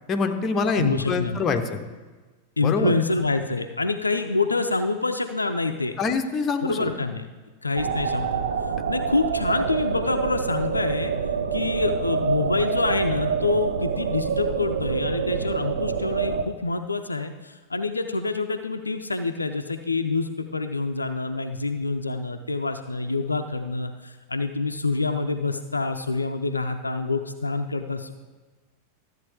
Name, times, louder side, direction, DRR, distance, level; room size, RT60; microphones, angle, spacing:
voice 1, 0.1-1.8 2.6-2.9 6.0-6.9, left 4 dB, 25° left, 6 dB, 0.8 m, -25 dB
voice 2, 0.7-1.5 2.6-6.0 6.6-7.3 7.6-8.4 8.9-11.1 11.5-28.1, left 3 dB, 80° left, 7 dB, 0.5 m, -26 dB
sound 1, 7.8-16.4, right 6 dB, 65° right, 0.6 m, -26 dB
13.0 x 7.9 x 3.6 m, 1.3 s
figure-of-eight pair, 90°, 0 cm